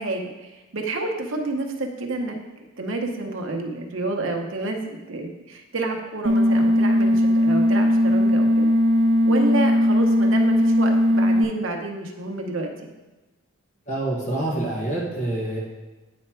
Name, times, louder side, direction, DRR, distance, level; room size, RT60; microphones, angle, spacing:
voice 1, 0.0-2.4 2.8-4.8 5.1-8.7 9.2-12.9, right 2 dB, 70° right, 3 dB, 0.8 m, -29 dB
sound 1, 6.2-11.4, equal, 40° right, 0.5 m, -18 dB
voice 2, 13.9-15.6, right 2 dB, 35° left, -3 dB, 1.5 m, -26 dB
8.7 x 3.4 x 4.4 m, 1.1 s
head